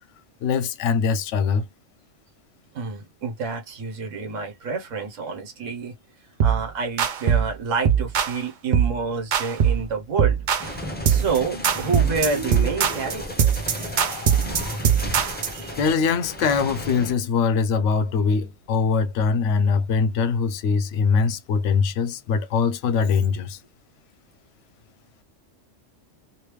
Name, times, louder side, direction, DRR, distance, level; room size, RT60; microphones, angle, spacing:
voice 1, 0.4-1.6 15.8-23.6, left 5 dB, 70° left, 0.9 m, -22 dB
voice 2, 2.7-5.9 6.4-10.4 11.1-13.6 14.7-15.8, right 4 dB, 75° right, 1.3 m, -29 dB
sound 1, 6.4-6.6 7.0-7.5 7.8-8.4 8.7-9.0 9.3-9.9 10.2-10.7 11.1-11.4 11.6-15.6, right 8 dB, 55° right, 0.6 m, -21 dB
sound 2, 10.0-14.8, left 4 dB, 50° left, 0.5 m, -39 dB
sound 3, 10.6-17.1, equal, 10° left, 0.7 m, -34 dB
3.1 x 2.7 x 3.1 m
omnidirectional pair, 1.3 m